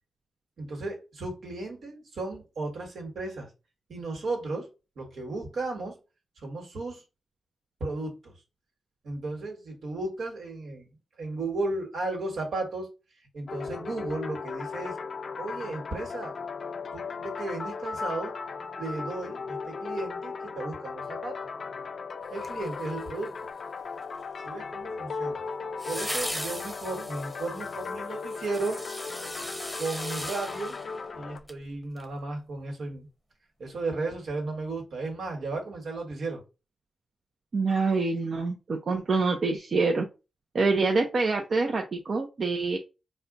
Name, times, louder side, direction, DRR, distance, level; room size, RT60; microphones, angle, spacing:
voice 1, 0.6-3.5 3.9-4.7 5.0-6.0 6.4-7.0 7.8-8.3 9.0-10.9 11.2-12.9 13.3-15.0 15.4-16.4 16.9-18.3 18.8-21.4 22.3-23.5 24.4-25.4 25.8-28.8 29.8-33.1 33.6-36.4, right 2 dB, 80° right, 1.5 m, -34 dB
sound 1, 13.5-31.4, left 5 dB, 60° left, 0.4 m, -37 dB
sound 2, 22.4-23.3 25.8-31.6 32.0-32.1, equal, ahead, 0.8 m, -38 dB
voice 2, 37.5-40.0 40.5-42.8, right 3 dB, 55° right, 0.6 m, -26 dB
4.2 x 2.2 x 3.9 m
cardioid pair, 80°, 0 cm